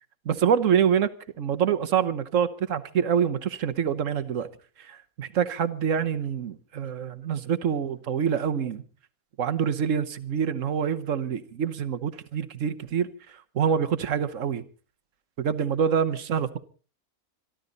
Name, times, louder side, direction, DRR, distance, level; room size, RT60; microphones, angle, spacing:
voice 1, 0.2-1.1 1.4-4.5 4.9-8.8 9.4-13.1 13.5-14.6 15.4-16.6, right 7 dB, 65° right, 12 dB, 1.4 m, -26 dB
26.5 x 12.0 x 4.0 m, 0.36 s
omnidirectional pair, 1.5 m